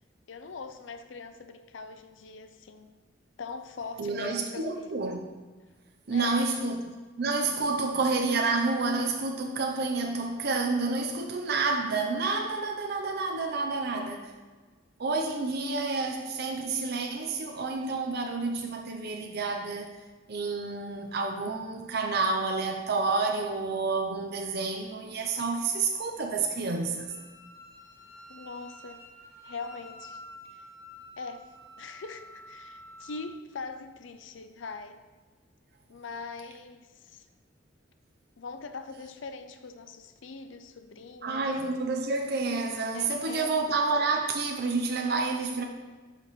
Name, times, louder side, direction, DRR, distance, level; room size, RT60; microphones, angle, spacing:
voice 1, 0.3-2.9 3.4-5.0 6.1-6.4 28.3-29.0 29.4-30.2 30.5-30.7 31.2-31.5 31.8-35.0 35.9-37.3 38.4-41.5 42.9-43.5, left 4 dB, 75° left, 9 dB, 0.5 m, -42 dB
voice 2, 4.0-5.2 6.1-6.8 7.2-14.3 15.0-20.0 20.3-27.1 41.2-45.6, right 3 dB, 60° right, 3 dB, 0.6 m, -29 dB
Wind instrument woodwind instrument, 25.2-33.4, equal, 15° left, 1.1 m, -50 dB
11.0 x 5.1 x 3.1 m, 1.4 s
head